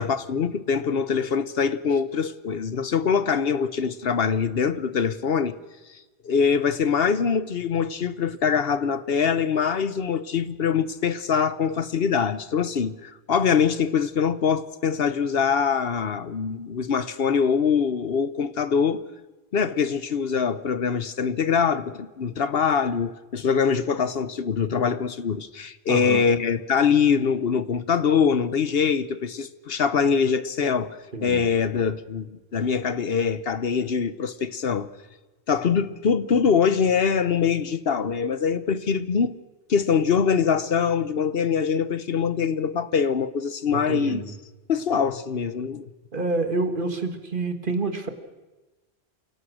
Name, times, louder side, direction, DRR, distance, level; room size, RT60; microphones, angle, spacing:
voice 1, 0.0-5.6 6.2-19.0 19.5-34.9 35.5-39.3 39.7-44.2 44.7-45.9, left 6 dB, 65° left, 1.1 m, -23 dB
voice 2, 25.9-26.2 31.1-31.4 43.9-44.3 46.1-48.1, right 3 dB, 50° right, 2.0 m, -27 dB
27.5 x 17.5 x 6.4 m
omnidirectional pair, 1.1 m